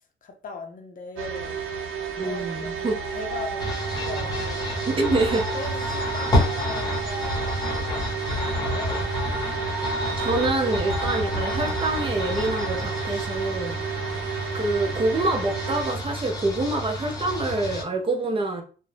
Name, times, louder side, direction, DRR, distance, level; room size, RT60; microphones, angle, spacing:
voice 1, 0.2-1.6 2.2-4.8 5.5-9.1, left 4 dB, 40° left, 0.5 m, -39 dB
sound 1, 1.2-15.9, right 6 dB, 85° right, 0.6 m, -32 dB
voice 2, 2.2-3.0 4.9-5.5 10.2-13.8 14.5-18.6, right 2 dB, 25° right, 0.5 m, -26 dB
sound 2, 2.8-4.5 5.2-8.1 9.0-11.7, right 1 dB, 60° right, 1.0 m, -38 dB
sound 3, 3.6-17.8, equal, 20° left, 0.9 m, -29 dB
2.4 x 2.0 x 3.1 m
cardioid pair, 120°, 21 cm